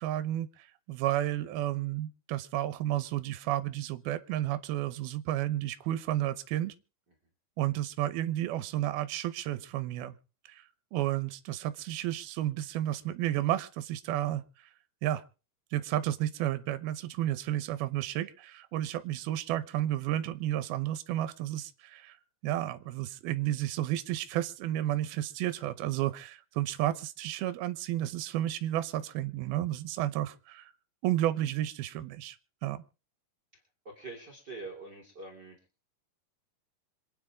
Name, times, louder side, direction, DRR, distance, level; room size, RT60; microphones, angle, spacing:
voice 1, 0.0-6.7 7.6-10.2 10.5-10.6 10.9-14.4 15.0-15.2 15.7-22.2 22.4-30.7 31.0-32.4 32.6-32.8, right 13 dB, 80° right, 12 dB, 2.8 m, -32 dB
voice 2, 33.8-35.6, right 3 dB, 30° right, 1 dB, 3.1 m, -44 dB
26.5 x 9.7 x 3.6 m, 0.35 s
omnidirectional pair, 4.4 m